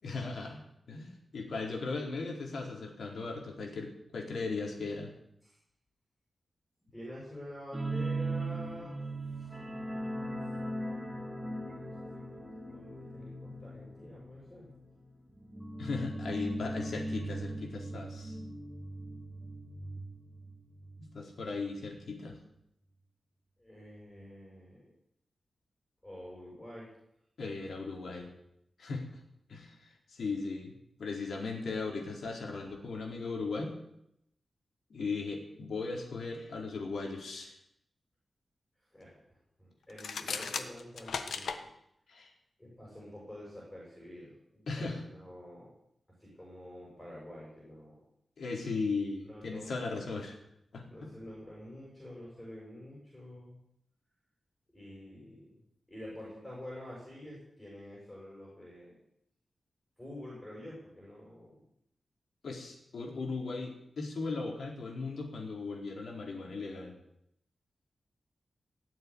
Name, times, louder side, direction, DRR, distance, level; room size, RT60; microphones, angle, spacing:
voice 1, 0.0-5.1 15.8-18.4 21.1-22.4 27.4-28.3 28.8-29.0 29.5-30.7 31.0-33.7 34.9-37.6 42.1-42.3 44.7-45.0 48.4-50.3 50.7-50.9 62.4-67.0, left 4 dB, 70° left, 0 dB, 4.4 m, -37 dB
voice 2, 6.9-9.0 9.3-11.4 11.7-14.7 23.6-24.9 26.0-26.9 38.9-41.7 42.6-45.7 46.2-48.0 49.2-50.1 50.9-53.6 54.7-55.6 55.9-59.0 60.0-61.6, left 1 dB, 10° left, -5 dB, 7.3 m, -48 dB
sound 1, 7.7-21.0 21.3-21.5 21.9-22.0, right 1 dB, 10° right, 2.5 m, -39 dB
sound 2, 39.9-41.6, left 5 dB, 90° left, 1.4 m, -36 dB
18.5 x 7.8 x 10.0 m, 0.77 s
wide cardioid pair, 170°, 0 cm